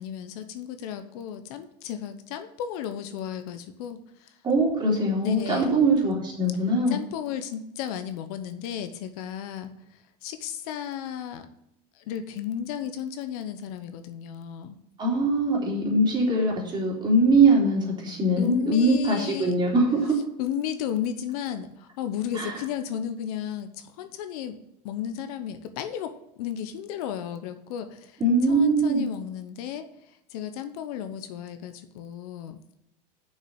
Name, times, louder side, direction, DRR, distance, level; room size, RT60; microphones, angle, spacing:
voice 1, 0.0-4.4 5.2-5.8 6.9-9.7 10.2-11.5 11.9-14.8 18.4-19.5 20.4-24.6 24.8-28.2 28.5-29.9 30.3-32.6, left 9 dB, 65° left, 9 dB, 1.0 m, -34 dB
voice 2, 4.4-7.0 15.0-20.2 22.3-22.5 28.2-29.0, right 2 dB, 20° right, -3 dB, 3.5 m, -22 dB
6.7 x 6.1 x 6.8 m, 0.85 s
supercardioid pair, 125°, 20 cm